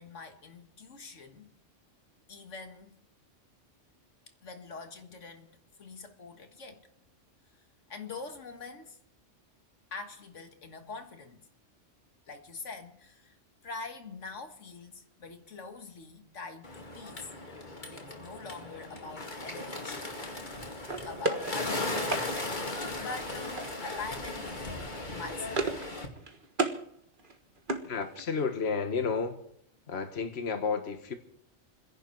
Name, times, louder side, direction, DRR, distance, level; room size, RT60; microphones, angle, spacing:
voice 1, 0.0-1.5 2.3-3.0 4.4-6.9 7.9-9.0 9.9-11.5 12.3-13.4 13.6-17.3 17.9-20.6 21.1-22.0 23.0-25.6, left 4 dB, 90° left, 2.0 m, -44 dB
Bird, 16.6-26.1, left 2 dB, 40° left, 2.3 m, -37 dB
sound 1, 20.9-22.3 23.6-24.0 24.3-24.5 24.8-25.9 26.2-26.8 27.2-28.4, right 3 dB, 45° right, 1.7 m, -34 dB
voice 2, 27.8-29.4 29.9-31.1, left 5 dB, 60° left, 1.6 m, -31 dB
28.0 x 11.0 x 4.6 m
omnidirectional pair, 1.2 m